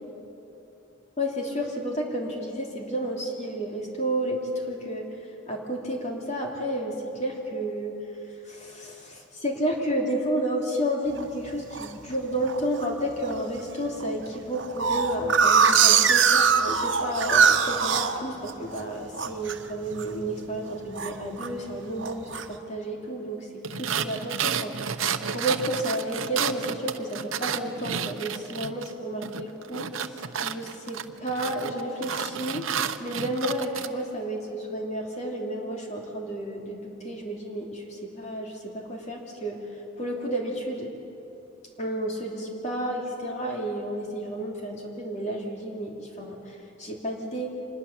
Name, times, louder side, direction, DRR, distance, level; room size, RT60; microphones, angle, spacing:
voice 1, 1.2-5.1 5.5-7.9 8.4-23.5 23.7-24.7 25.3-32.7 33.0-39.7 40.0-40.9 41.8-47.5, right 1 dB, 35° left, 0 dB, 2.9 m, -31 dB
sound 1, 11.2-11.9 12.5-12.8 13.2-13.3 13.6-13.7 14.0-18.8 19.1-19.6 19.9-20.2 20.5-21.5 22.0-22.4, right 6 dB, 65° right, 1.3 m, -22 dB
sound 2, 23.6-28.9 29.2-33.9, right 7 dB, 90° right, 0.9 m, -31 dB
25.5 x 21.0 x 7.3 m, 3.0 s
head